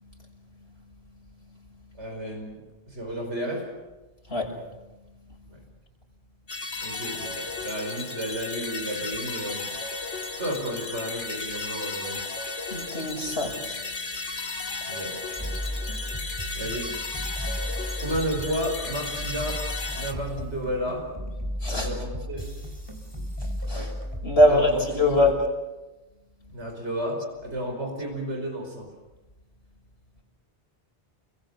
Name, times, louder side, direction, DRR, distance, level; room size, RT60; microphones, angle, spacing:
voice 1, 2.0-3.7 5.5-5.6 6.8-7.3 7.6-9.7 10.4-12.2 14.9-15.2 16.5-16.9 18.0-19.6 19.9-21.1 21.7-22.5 23.7-24.0 24.5-25.3 26.5-28.9, equal, 85° right, 1 dB, 5.6 m, -32 dB
sound 1, 6.5-20.1, left 3 dB, 90° left, 2.0 m, -34 dB
voice 2, 12.7-13.9 14.7-14.8 21.6-21.9 23.4-23.9 24.2-25.4, left 1 dB, 65° left, 0 dB, 6.4 m, -23 dB
sound 2, 15.4-25.3, equal, 20° right, 3.6 m, -35 dB
29.0 x 22.0 x 7.0 m, 1.1 s
omnidirectional pair, 1.1 m